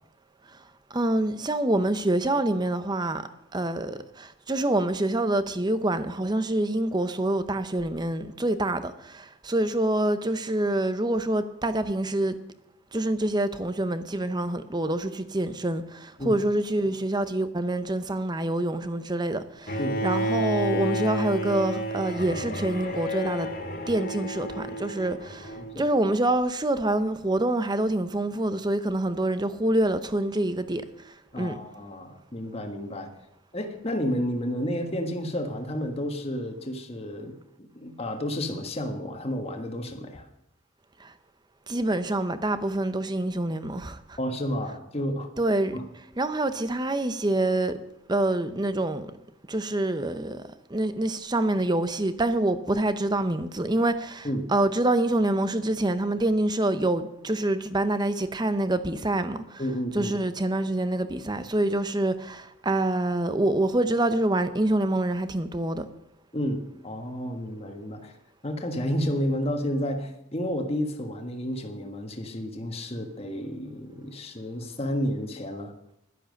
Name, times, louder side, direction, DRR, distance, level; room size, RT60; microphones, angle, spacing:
voice 1, 0.9-3.2 3.5-12.3 12.9-23.5 23.9-30.8 31.4-31.6 41.0-41.1 41.7-44.2 45.4-45.8 46.2-47.8 48.1-49.1 49.5-50.4 50.7-59.6 59.9-65.8, right 1 dB, 20° right, 0.7 m, -26 dB
Bowed string instrument, 19.7-25.7, equal, 45° left, 2.2 m, -31 dB
voice 2, 25.6-25.9 31.3-33.1 33.5-40.2 44.2-45.3 45.7-45.8 54.2-54.5 59.6-60.1 66.3-68.1 68.4-75.7, equal, 30° left, 1.4 m, -31 dB
11.5 x 10.5 x 6.5 m
head